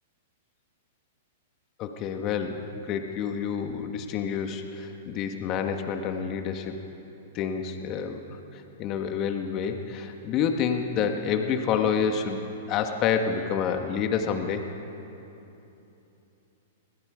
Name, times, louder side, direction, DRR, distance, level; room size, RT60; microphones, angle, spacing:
voice 1, 1.8-6.8 7.3-14.6, left 7 dB, 40° left, 5 dB, 1.6 m, -28 dB
28.5 x 21.5 x 5.2 m, 3.0 s
hypercardioid pair, 120°, 0 cm